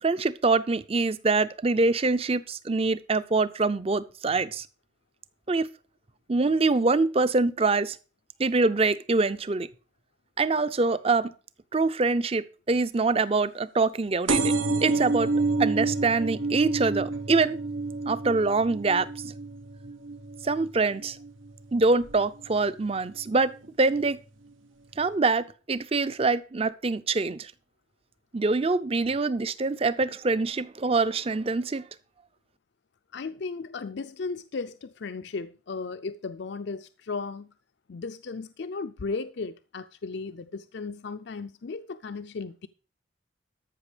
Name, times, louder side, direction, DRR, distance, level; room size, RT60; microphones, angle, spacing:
voice 1, 0.0-4.7 5.5-5.7 6.3-8.0 8.4-9.7 10.4-11.3 11.7-14.5 14.8-15.3 15.6-17.6 18.1-19.1 20.4-21.2 21.7-24.2 25.0-27.5 28.3-31.8, right 3 dB, 30° right, 0.5 m, -24 dB
sound 1, 14.3-21.5 22.0-22.5 23.3-23.4 23.6-23.7 23.9-24.0, right 3 dB, 90° right, 0.9 m, -29 dB
voice 2, 33.1-37.5 37.9-42.7, left 4 dB, 60° left, 0.5 m, -35 dB
13.5 x 5.9 x 5.0 m
head